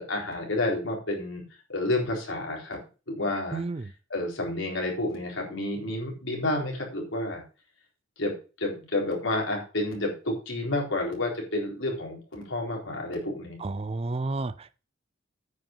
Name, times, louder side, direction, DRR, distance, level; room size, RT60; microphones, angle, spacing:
voice 1, 0.0-1.4 1.7-2.8 3.1-3.6 4.1-7.4 8.2-8.3 8.6-13.6, left 2 dB, 75° left, 4.1 m, -30 dB
voice 2, 3.5-3.9 13.6-14.8, right 2 dB, 30° right, 0.4 m, -31 dB
9.2 x 5.9 x 7.2 m
head